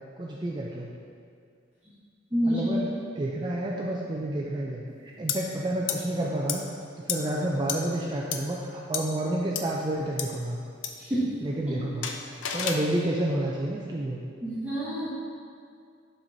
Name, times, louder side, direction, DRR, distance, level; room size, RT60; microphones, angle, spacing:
voice 1, 0.2-0.9 2.5-2.9 3.2-6.6 7.1-10.6 11.4-12.1 12.5-14.2, right 1 dB, 25° right, -3 dB, 0.4 m, -29 dB
voice 2, 2.3-2.6 11.0-11.3 14.4-15.1, equal, 5° right, -14 dB, 1.5 m, -27 dB
sound 1, 5.3-5.4 5.9-6.0 6.5-6.6 7.1-7.2 7.7-7.8 8.3-8.4 8.9-9.0 9.5-9.6 10.2-10.3 10.8-10.9 12.0-12.8, left 8 dB, 85° left, 0.5 m, -30 dB
7.3 x 5.5 x 2.7 m, 2.3 s
head